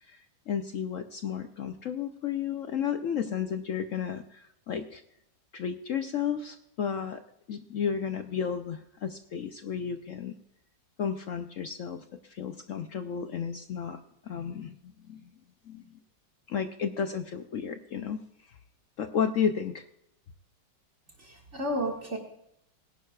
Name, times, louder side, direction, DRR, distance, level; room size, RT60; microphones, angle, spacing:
voice 1, 0.1-5.0 5.5-7.2 7.5-10.3 11.0-14.0 14.3-15.2 15.7-15.8 16.5-18.2 19.0-19.8, left 7 dB, 65° left, 8 dB, 0.8 m, -33 dB
voice 2, 21.2-22.2, equal, 40° right, 0 dB, 2.1 m, -32 dB
19.0 x 11.0 x 2.4 m, 0.78 s
omnidirectional pair, 1.9 m